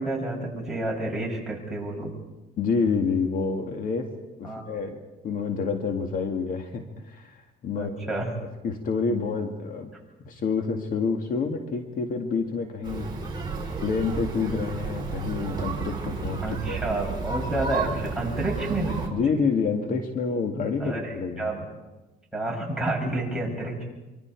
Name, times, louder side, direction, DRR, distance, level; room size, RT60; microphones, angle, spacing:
voice 1, 0.0-2.1 4.4-4.6 7.7-8.3 16.4-19.2 20.8-21.7 22.3-23.8, right 2 dB, 5° right, -3 dB, 7.5 m, -29 dB
voice 2, 2.6-4.1 4.4-5.0 5.2-8.1 8.6-9.9 10.3-13.1 13.8-17.0 19.1-21.5, left 5 dB, 55° left, 4 dB, 2.1 m, -28 dB
sound 1, 12.8-19.1, right 4 dB, 25° right, 5.7 m, -32 dB
25.0 x 25.0 x 4.7 m, 1.1 s
cardioid pair, 110°, 17 cm